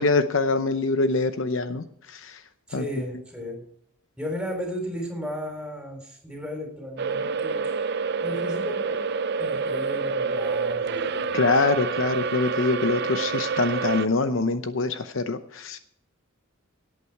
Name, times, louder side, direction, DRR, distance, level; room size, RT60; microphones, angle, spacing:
voice 1, 0.0-2.4 2.7-2.8 11.3-15.8, left 3 dB, 60° left, 10 dB, 0.8 m, -24 dB
voice 2, 2.7-3.6 4.2-7.8 8.2-9.1 9.4-11.4 12.0-12.1, equal, 5° right, 2 dB, 3.9 m, -35 dB
sound 1, 7.0-14.1, right 5 dB, 50° right, 0.5 m, -28 dB
17.5 x 8.6 x 4.7 m, 0.71 s
head